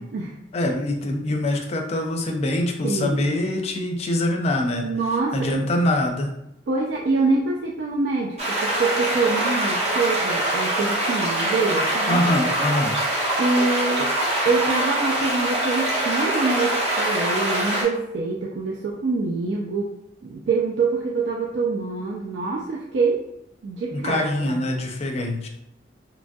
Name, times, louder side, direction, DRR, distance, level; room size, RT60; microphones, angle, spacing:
voice 1, 0.0-0.3 2.8-3.2 4.8-5.7 6.7-12.2 13.4-14.1 14.5-19.9 20.2-23.2 23.6-24.6, right 3 dB, 70° right, -2 dB, 0.3 m, -25 dB
voice 2, 0.5-4.9 5.3-6.4 12.1-13.0 23.9-25.5, left 1 dB, 35° left, 3 dB, 0.4 m, -24 dB
sound 1, 8.4-17.8, right 1 dB, 40° right, 0.8 m, -24 dB
2.9 x 2.3 x 2.6 m, 0.84 s
head